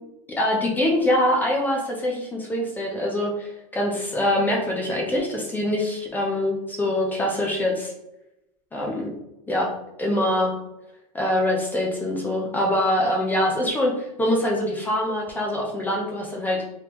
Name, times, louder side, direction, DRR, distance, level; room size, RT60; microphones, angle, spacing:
voice 1, 0.3-7.9 8.7-9.1 9.5-9.7 10.0-10.5 11.1-16.6, left 1 dB, 10° left, -2 dB, 0.4 m, -24 dB
3.4 x 3.0 x 2.9 m, 0.89 s
supercardioid pair, 160°, 19 cm